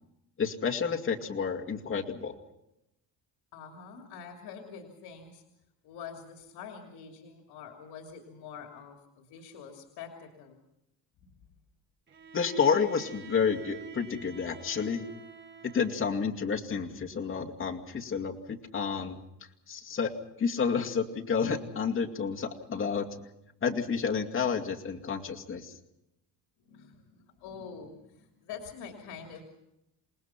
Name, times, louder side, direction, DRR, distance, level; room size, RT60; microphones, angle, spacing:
voice 1, 0.4-2.4 12.3-15.0 15.7-19.2 19.7-20.1 20.4-23.2 23.6-25.7, left 6 dB, 30° left, 2 dB, 2.3 m, -30 dB
voice 2, 3.5-5.4 5.8-10.6 11.2-11.3 26.6-29.4, left 6 dB, 80° left, 3 dB, 3.2 m, -46 dB
Bowed string instrument, 12.1-16.4, right 5 dB, 30° right, 4.6 m, -48 dB
28.5 x 19.5 x 5.9 m, 0.86 s
cardioid pair, 140°, 40 cm